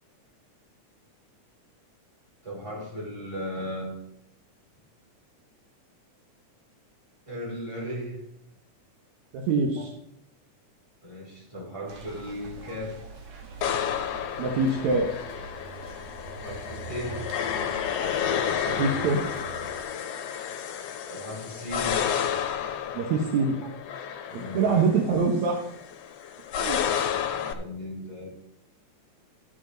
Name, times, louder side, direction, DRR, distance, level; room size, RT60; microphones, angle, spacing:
voice 1, 2.4-4.0 7.3-8.2 9.8-9.9 11.0-13.0 14.8-14.9 16.3-17.2 19.1-19.4 21.1-22.0 23.4-23.7 24.3-24.9 27.3-28.3, left 1 dB, 10° right, -5 dB, 4.3 m, -36 dB
voice 2, 9.3-9.9 14.4-15.1 18.7-19.2 22.9-23.5 24.3-25.6 26.6-26.8, right 4 dB, 70° right, 2 dB, 2.4 m, -24 dB
sound 1, 11.9-19.8, right 4 dB, 55° right, 2.2 m, -43 dB
sound 2, 13.6-27.5, left 8 dB, 70° left, 1.7 m, -31 dB
12.5 x 7.3 x 3.9 m, 0.78 s
omnidirectional pair, 3.5 m